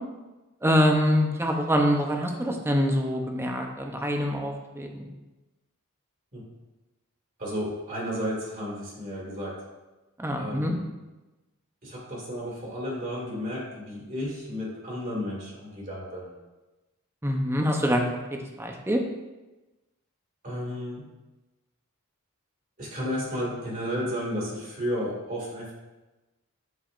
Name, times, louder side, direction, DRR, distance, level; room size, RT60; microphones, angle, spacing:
voice 1, 0.6-5.1 10.2-10.7 17.2-18.1 18.6-19.0, equal, 10° right, 2 dB, 0.7 m, -25 dB
voice 2, 7.4-9.5 10.4-10.8 11.8-16.3 20.4-21.0 22.8-25.7, equal, 40° right, -5 dB, 2.1 m, -33 dB
10.0 x 4.7 x 2.5 m, 1.1 s
head